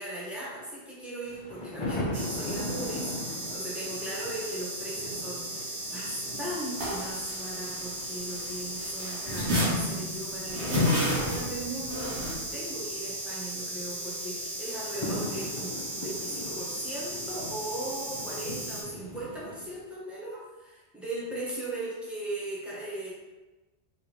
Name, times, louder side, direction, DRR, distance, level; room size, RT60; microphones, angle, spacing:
voice 1, 0.0-23.1, right 1 dB, ahead, -8 dB, 1.3 m, -38 dB
sound 1, 1.3-19.8, left 1 dB, 35° left, 0.5 m, -41 dB
sound 2, 2.1-18.8, right 1 dB, 70° right, 1.3 m, -37 dB
sound 3, 6.8-8.5 8.8-12.3, left 1 dB, 90° right, 1.7 m, -29 dB
4.6 x 3.2 x 3.4 m, 1.1 s
omnidirectional pair, 1.1 m